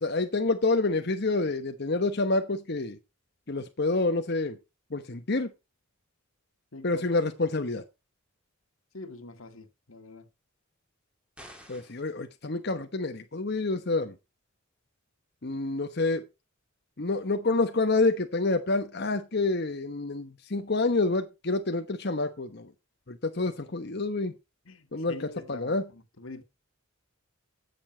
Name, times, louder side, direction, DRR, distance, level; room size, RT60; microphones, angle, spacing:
voice 1, 0.0-3.0 3.5-4.6 4.9-5.5 6.8-7.8 11.7-14.1 15.4-16.2 17.0-22.7 23.1-24.3 24.9-25.1 25.5-25.8, left 3 dB, 50° left, 1.1 m, -28 dB
voice 2, 6.7-7.1 8.9-10.3 23.5-23.8 24.7-26.4, left 2 dB, 85° left, 1.9 m, -45 dB
sound 1, 11.4-12.1, equal, 5° right, 2.8 m, -49 dB
15.5 x 7.0 x 4.4 m
head